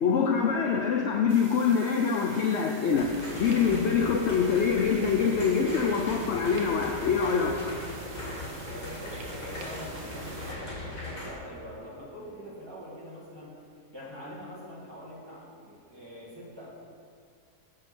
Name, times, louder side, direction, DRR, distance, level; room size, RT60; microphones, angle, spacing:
voice 1, 0.0-7.6, left 6 dB, 75° left, 2 dB, 0.6 m, -25 dB
sound 1, 1.3-10.5, right 3 dB, 60° right, 1.1 m, -47 dB
sound 2, 2.9-11.3, left 1 dB, 55° left, 2.7 m, -39 dB
voice 2, 8.6-13.5 13.9-16.7, equal, 15° right, -8 dB, 2.0 m, -44 dB
7.4 x 5.0 x 5.9 m, 2.3 s
omnidirectional pair, 1.7 m